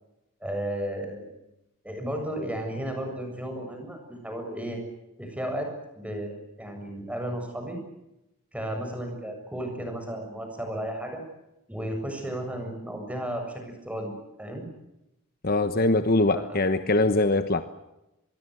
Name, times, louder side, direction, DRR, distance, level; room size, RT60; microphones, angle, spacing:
voice 1, 0.4-1.3 1.8-4.8 5.2-5.7 6.0-7.8 8.5-11.2 11.7-14.1 14.4-14.7 16.3-16.7, right 1 dB, 5° right, 4 dB, 7.3 m, -34 dB
voice 2, 15.4-17.6, left 2 dB, 45° left, 10 dB, 1.2 m, -22 dB
26.0 x 22.5 x 7.9 m, 0.91 s
head